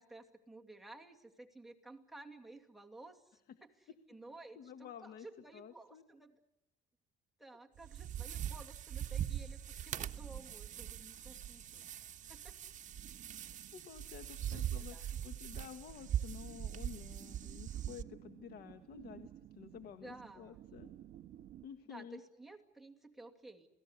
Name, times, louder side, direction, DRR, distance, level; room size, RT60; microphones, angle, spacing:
voice 1, 0.0-6.4 7.4-12.0 12.3-12.6 14.8-15.1 19.9-20.6 21.9-23.7, right 2 dB, ahead, 1 dB, 2.5 m, -54 dB
voice 2, 4.5-5.3 5.5-6.0 13.7-20.9 21.6-22.2, left 8 dB, 65° left, 9 dB, 1.6 m, -51 dB
sound 1, 7.8-18.0, right 10 dB, 50° right, 1.3 m, -41 dB
sound 2, 9.9-21.7, right 12 dB, 70° right, 1.4 m, -58 dB
28.0 x 19.0 x 8.2 m, 0.89 s
cardioid pair, 110°, 17 cm